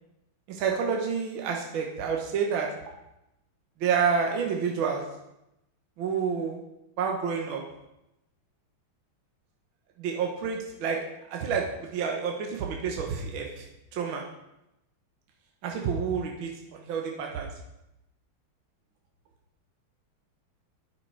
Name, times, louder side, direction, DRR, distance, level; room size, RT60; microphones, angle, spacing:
voice 1, 0.5-2.7 3.8-5.0 6.0-6.6 7.0-7.6 10.0-11.0 11.3-13.6 13.9-14.2 15.6-17.5, right 6 dB, 70° right, 1 dB, 1.7 m, -29 dB
8.9 x 6.3 x 4.5 m, 0.88 s
omnidirectional pair, 2.3 m